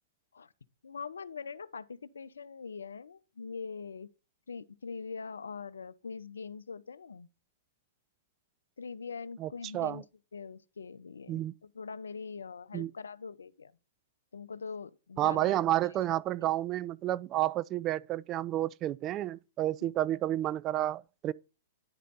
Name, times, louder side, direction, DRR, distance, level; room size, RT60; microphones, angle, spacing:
voice 1, 0.8-4.1 4.5-7.3 8.8-10.0 10.3-13.7 14.3-15.6 15.8-16.1 19.8-19.9, left 5 dB, 75° left, 0.5 m, -43 dB
voice 2, 9.4-10.0 11.3-11.5 12.7-12.9 15.2-21.3, right 14 dB, 30° right, 0.3 m, -30 dB
10.5 x 5.0 x 4.2 m
figure-of-eight pair, 110°, 0 cm